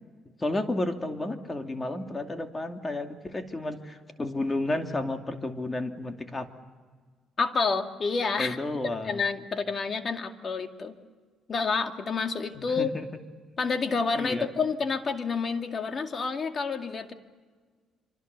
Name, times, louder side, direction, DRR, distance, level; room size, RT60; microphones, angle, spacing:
voice 1, 0.4-6.5 8.4-9.2 12.5-13.1 14.1-14.5, left 2 dB, 20° left, 5 dB, 2.5 m, -32 dB
voice 2, 7.4-8.6 9.0-10.9 11.5-12.9 13.6-17.1, left 4 dB, 40° left, 6 dB, 2.2 m, -29 dB
27.5 x 25.0 x 6.9 m, 1.5 s
cardioid pair, 85°, 0 cm